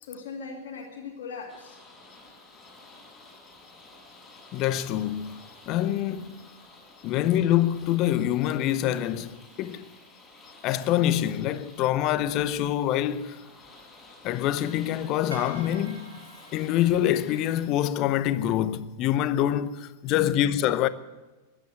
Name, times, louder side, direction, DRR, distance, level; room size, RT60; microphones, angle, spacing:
voice 1, 0.0-1.8 20.1-20.5, left 5 dB, 55° left, 2.5 m, -39 dB
sound 1, 1.5-17.7, left 2 dB, 10° left, 6.2 m, -52 dB
voice 2, 4.5-5.4 5.7-6.4 7.0-9.9 10.6-13.4 14.2-16.1 16.5-20.9, left 12 dB, 40° left, 0.7 m, -25 dB
sound 2, 15.3-17.7, right 3 dB, 75° right, 2.6 m, -46 dB
15.5 x 11.5 x 8.0 m
figure-of-eight pair, 90°, 0 cm